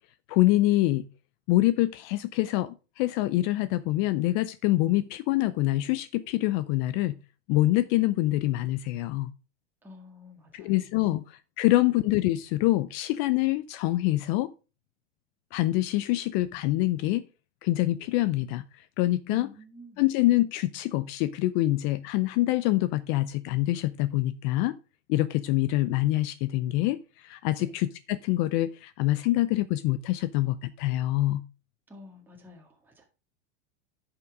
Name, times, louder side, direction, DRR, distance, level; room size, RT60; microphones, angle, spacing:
voice 1, 0.3-1.1 1.5-7.1 7.5-9.3 10.5-11.2 11.6-14.5 15.5-17.2 17.6-18.6 19.0-19.5 20.0-24.8 25.1-27.0 27.2-31.4, left 17 dB, 40° left, 0.5 m, -25 dB
voice 2, 9.8-10.8 19.3-20.0 27.6-27.8 31.9-33.0, left 1 dB, 5° right, 1.8 m, -49 dB
10.5 x 5.9 x 3.6 m
hypercardioid pair, 125°, 36 cm